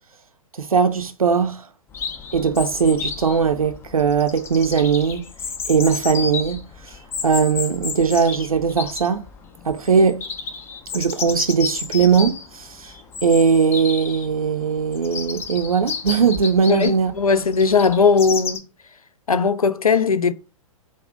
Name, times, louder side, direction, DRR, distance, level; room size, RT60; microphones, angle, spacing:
voice 1, 0.5-1.7 2.3-5.3 5.7-6.7 7.2-9.2 9.6-10.2 10.9-12.9 13.2-17.1, right 6 dB, 85° right, 0.5 m, -19 dB
Chirp tweet, 1.9-18.6, left 5 dB, 15° left, 0.4 m, -32 dB
voice 2, 16.7-18.6 19.3-20.3, left 5 dB, 90° left, 0.4 m, -18 dB
4.8 x 2.1 x 2.4 m
figure-of-eight pair, 115°, 18 cm